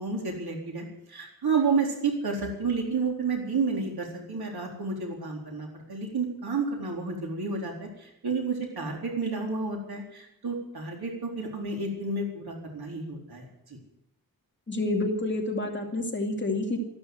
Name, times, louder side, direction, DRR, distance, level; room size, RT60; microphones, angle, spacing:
voice 1, 0.0-13.8, right 4 dB, 80° right, 0 dB, 4.1 m, -30 dB
voice 2, 14.7-16.8, left 2 dB, 30° left, 2 dB, 2.5 m, -28 dB
13.5 x 12.5 x 7.9 m, 0.80 s
wide cardioid pair, 120°, 37 cm